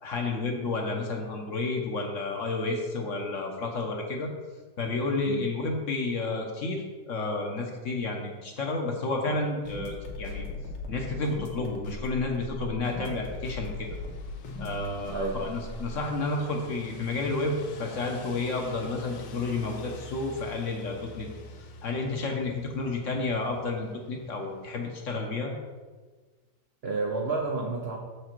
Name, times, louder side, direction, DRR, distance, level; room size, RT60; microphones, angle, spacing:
voice 1, 0.0-4.3 4.8-10.5 10.9-14.0 14.6-21.3 21.8-25.5, left 3 dB, 55° left, 1 dB, 1.0 m, -31 dB
sound 1, 9.6-16.0, left 2 dB, 90° left, 1.7 m, -39 dB
sound 2, 13.0-24.7, left 2 dB, 75° left, 1.3 m, -47 dB
voice 2, 15.1-15.4 26.8-28.0, right 3 dB, 75° right, 1 dB, 0.5 m, -30 dB
6.7 x 5.0 x 4.5 m, 1.4 s
omnidirectional pair, 1.9 m